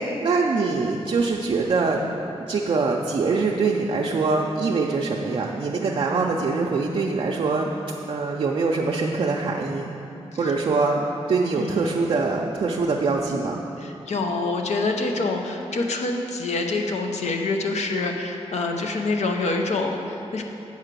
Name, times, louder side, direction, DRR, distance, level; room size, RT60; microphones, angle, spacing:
voice 1, 0.0-2.0 2.3-7.7 8.1-9.9 10.4-13.6, right 4 dB, 50° right, -2 dB, 0.5 m, -23 dB
voice 2, 13.8-20.4, left 3 dB, 80° left, 3 dB, 0.8 m, -26 dB
8.0 x 4.8 x 6.7 m, 2.8 s
wide cardioid pair, 140°, 11 cm